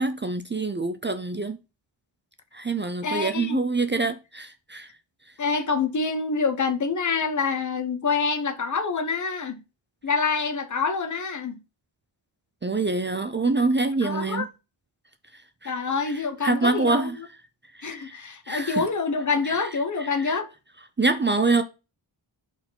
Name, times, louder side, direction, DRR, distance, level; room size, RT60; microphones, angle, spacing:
voice 1, 0.0-1.6 2.5-4.9 12.6-14.5 15.6-15.7 16.1-17.2 17.8-18.8 20.0-20.4 21.0-21.6, right 3 dB, 25° right, 0.4 m, -25 dB
voice 2, 3.0-3.6 5.4-9.6 10.0-11.6 14.0-14.5 15.6-17.3 17.8-20.5, left 4 dB, 40° left, 0.8 m, -26 dB
4.6 x 4.3 x 5.6 m
wide cardioid pair, 160°, 48 cm